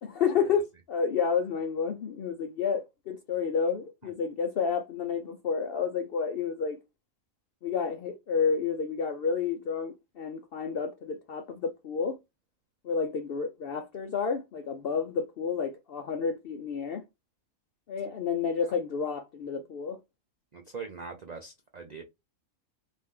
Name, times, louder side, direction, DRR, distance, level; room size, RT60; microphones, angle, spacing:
voice 1, 0.0-6.8 7.6-12.2 12.8-17.0 17.9-20.0, left 6 dB, 65° left, 0.6 m, -30 dB
voice 2, 20.5-22.0, right 5 dB, 55° right, 0.4 m, -41 dB
4.2 x 2.6 x 3.6 m
omnidirectional pair, 1.4 m